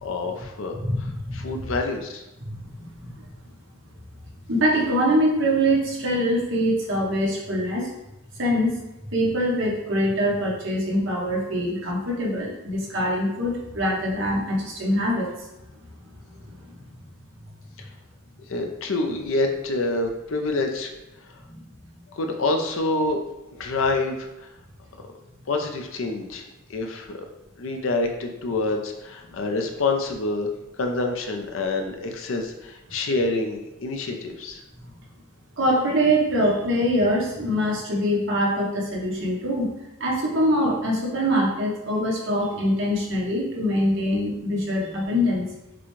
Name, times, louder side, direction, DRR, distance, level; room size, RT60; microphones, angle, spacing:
voice 1, 0.0-1.1 1.3-2.2 18.5-20.9 22.2-23.2 23.6-24.2 25.5-26.4 26.7-27.1 27.6-30.5 30.8-34.6, left 2 dB, 70° left, 4 dB, 0.6 m, -27 dB
voice 2, 0.7-1.7 2.4-3.2 4.5-7.9 8.4-8.8 9.1-15.3 16.5-16.7 21.5-21.6 35.6-39.7 40.0-45.5, equal, 60° right, -3 dB, 1.1 m, -24 dB
6.0 x 2.2 x 3.1 m, 0.94 s
head